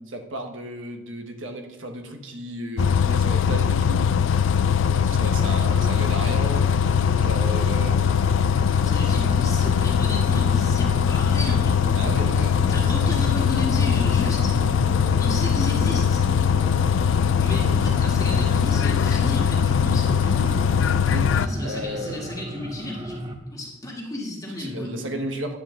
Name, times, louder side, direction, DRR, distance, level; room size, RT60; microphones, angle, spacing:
voice 1, 0.1-4.1 4.9-6.7 7.2-8.0 9.0-9.2 11.9-13.1 21.1-22.3 24.6-25.6, right 1 dB, 90° right, 4 dB, 1.3 m, -34 dB
Bus, 2.8-21.5, left 7 dB, 85° left, 0.4 m, -21 dB
sound 1, 5.3-23.3, right 1 dB, 20° right, 0.7 m, -35 dB
voice 2, 8.9-12.0 12.3-14.6 15.2-16.3 17.4-20.6 21.3-25.2, left 1 dB, 20° left, -3 dB, 1.7 m, -33 dB
10.0 x 7.9 x 3.8 m, 0.98 s
head